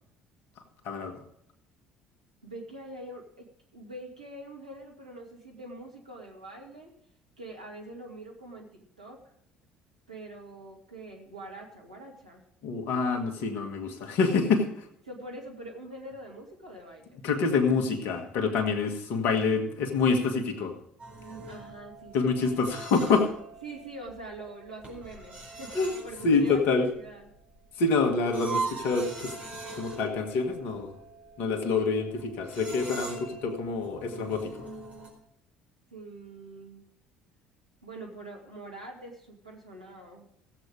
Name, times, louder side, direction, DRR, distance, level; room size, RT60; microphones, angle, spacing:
voice 1, 0.8-1.2 12.6-14.9 17.2-20.7 22.1-23.3 25.7-25.9 26.2-26.9 27.8-29.4 29.7-30.9 31.4-34.7, left 4 dB, 55° left, 5 dB, 2.0 m, -26 dB
voice 2, 2.4-3.5 3.7-6.9 7.4-9.3 10.1-12.4 15.0-17.2 21.5-22.6 23.6-25.7 26.0-27.3 35.9-36.8 37.8-40.3, right 1 dB, 85° right, -1 dB, 2.3 m, -44 dB
sound 1, 21.0-35.1, right 3 dB, 35° right, 4.6 m, -42 dB
16.0 x 8.3 x 4.9 m, 0.73 s
figure-of-eight pair, 55°, 4 cm